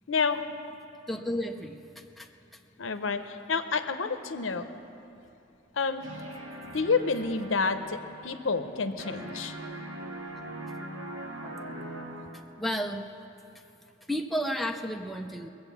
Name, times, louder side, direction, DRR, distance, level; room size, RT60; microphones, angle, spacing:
voice 1, 0.1-0.4 2.8-4.7 5.7-6.0 6.7-9.6, left 4 dB, 70° left, 9 dB, 0.7 m, -29 dB
voice 2, 1.1-1.8 2.2-2.3 12.6-13.0 14.1-15.5, equal, ahead, 2 dB, 0.5 m, -31 dB
sound 1, 6.0-8.7 9.0-12.6, right 1 dB, 85° right, 2.2 m, -41 dB
20.5 x 7.8 x 7.1 m, 2.8 s
head